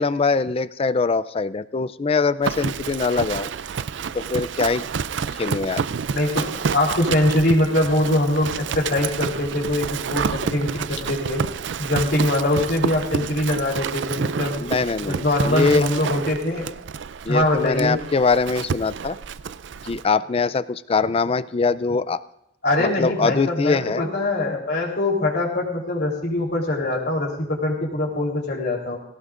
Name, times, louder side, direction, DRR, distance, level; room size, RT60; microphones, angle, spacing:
voice 1, 0.0-3.5 4.1-4.8 5.4-5.8 14.6-15.9 17.3-19.2 19.8-22.2 22.8-24.0, left 4 dB, 30° left, 16 dB, 0.4 m, -22 dB
Livestock farm animals working animals, 2.4-20.0, right 6 dB, 70° right, 0.4 m, -29 dB
voice 2, 6.1-11.4 11.8-14.6 15.1-16.7 17.3-18.0 22.6-29.0, left 1 dB, 60° left, 0 dB, 3.6 m, -23 dB
19.5 x 17.5 x 2.5 m, 0.81 s
head